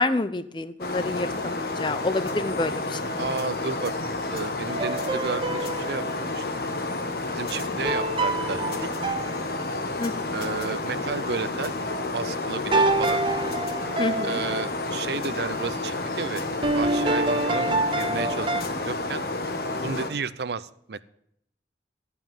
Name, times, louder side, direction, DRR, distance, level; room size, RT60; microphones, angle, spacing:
voice 1, 0.0-3.1 10.0-10.3 14.0-14.4, left 2 dB, 25° left, 14 dB, 0.5 m, -28 dB
sound 1, 0.8-20.1, left 2 dB, 55° left, 1.2 m, -30 dB
Telephone, 3.0-20.1, left 1 dB, 85° left, 1.6 m, -48 dB
voice 2, 3.2-4.0 4.3-6.6 7.3-8.9 10.3-11.7 12.1-13.2 14.2-16.4 16.7-19.2 19.8-21.0, right 5 dB, 70° right, 16 dB, 0.5 m, -32 dB
sound 2, 4.7-6.2 7.9-10.1 12.7-14.7 16.6-18.6, right 2 dB, 30° right, 0.6 m, -27 dB
12.0 x 5.6 x 9.0 m, 0.73 s
head